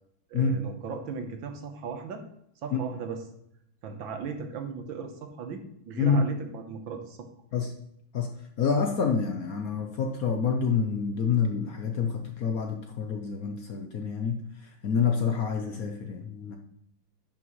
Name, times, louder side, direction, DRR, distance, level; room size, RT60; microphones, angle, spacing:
voice 1, 0.3-2.2 2.6-3.2 3.8-7.2, right 5 dB, 70° right, 6 dB, 1.6 m, -37 dB
voice 2, 8.6-14.4 14.8-16.6, left 6 dB, 65° left, 4 dB, 0.9 m, -27 dB
10.5 x 6.0 x 3.1 m, 0.74 s
omnidirectional pair, 2.3 m